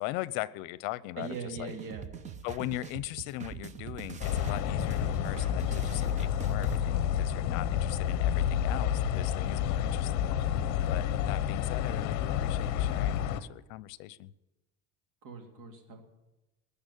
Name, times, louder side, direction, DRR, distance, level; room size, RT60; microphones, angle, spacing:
voice 1, 0.0-1.7 2.4-14.3, left 17 dB, 70° left, 19 dB, 0.8 m, -39 dB
sound 1, 1.2-6.8, right 7 dB, 20° right, 0.6 m, -43 dB
voice 2, 1.2-2.0 15.2-16.0, right 4 dB, 65° right, 4 dB, 3.2 m, -40 dB
sound 2, 4.2-13.4, left 9 dB, 50° left, 1.1 m, -29 dB
20.5 x 7.1 x 10.0 m, 1.0 s
cardioid pair, 155°, 35 cm